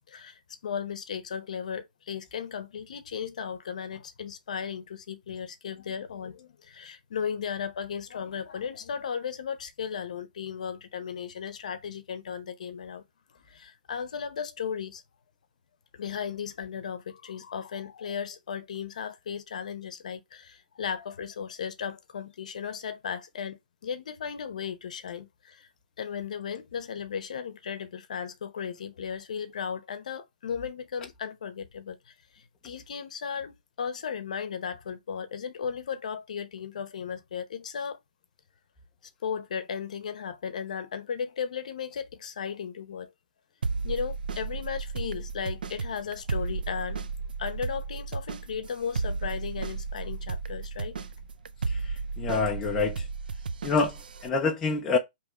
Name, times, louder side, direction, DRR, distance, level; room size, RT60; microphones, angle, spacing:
voice 1, 0.1-13.0 13.3-15.0 15.9-25.7 26.0-38.0 39.2-43.1 43.8-47.0 47.4-51.0, left 7 dB, 50° left, 0.7 m, -36 dB
sound 1, 43.6-54.3, right 4 dB, 75° right, 0.5 m, -34 dB
voice 2, 51.7-53.1 53.6-55.0, left 4 dB, 5° left, 0.3 m, -27 dB
5.0 x 3.0 x 3.0 m
hypercardioid pair, 180°, 5 cm